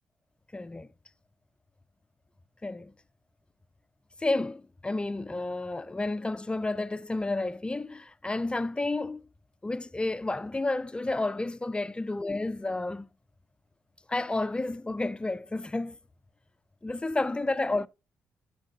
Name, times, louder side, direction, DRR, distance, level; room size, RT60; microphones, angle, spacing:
voice 1, 0.5-0.9 2.6-2.9 4.2-9.2 9.6-13.1 14.1-16.0 16.8-17.9, left 2 dB, 15° left, 0.5 m, -31 dB
12.0 x 4.7 x 2.4 m
hypercardioid pair, 50°, 6 cm